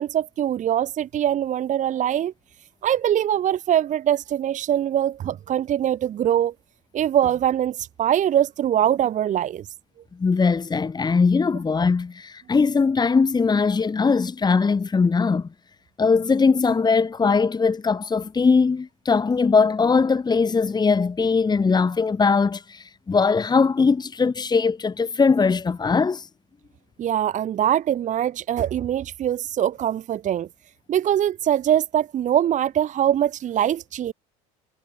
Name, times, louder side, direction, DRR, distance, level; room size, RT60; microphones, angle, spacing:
voice 1, 0.0-2.3 2.8-6.5 6.9-9.6 27.0-30.5 30.9-34.1, right 10 dB, 45° right, 1.1 m, -22 dB
voice 2, 10.2-15.5 16.0-26.3, left 4 dB, 25° left, 2.2 m, -20 dB
hypercardioid pair, 80°, 18 cm